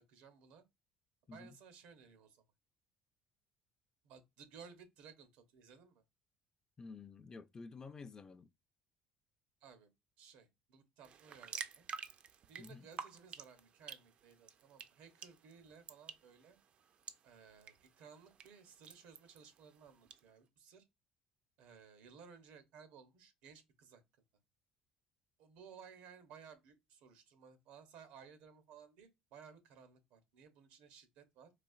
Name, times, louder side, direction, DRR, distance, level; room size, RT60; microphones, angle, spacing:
voice 1, 0.1-0.6 1.3-2.4 4.0-6.0 9.6-9.9 10.2-11.9 12.5-16.6 17.2-20.8 21.6-24.0 25.4-31.5, right 6 dB, 80° right, 0.8 m, -58 dB
voice 2, 6.8-8.5 12.6-12.9, left 4 dB, 30° left, 0.4 m, -51 dB
sound 1, 11.0-20.2, right 7 dB, 50° right, 0.4 m, -51 dB
4.1 x 2.4 x 2.3 m
supercardioid pair, 95°, 2 cm